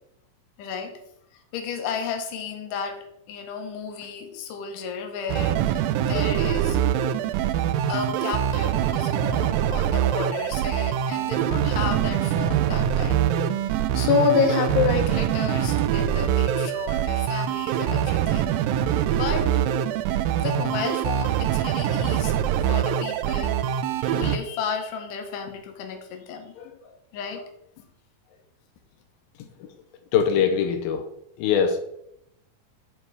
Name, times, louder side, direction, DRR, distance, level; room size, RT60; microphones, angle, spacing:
voice 1, 0.6-1.0 1.5-6.8 7.9-18.5 19.1-19.6 20.4-22.3 22.7-23.6 24.0-27.5 27.8-27.9, left 6 dB, 70° left, 4 dB, 2.5 m, -31 dB
sound 1, 5.3-24.4, right 10 dB, 80° right, 2.2 m, -24 dB
voice 2, 30.1-31.1 31.4-31.8, left 7 dB, 90° left, 5 dB, 2.6 m, -22 dB
9.2 x 4.6 x 4.8 m, 0.77 s
omnidirectional pair, 4.2 m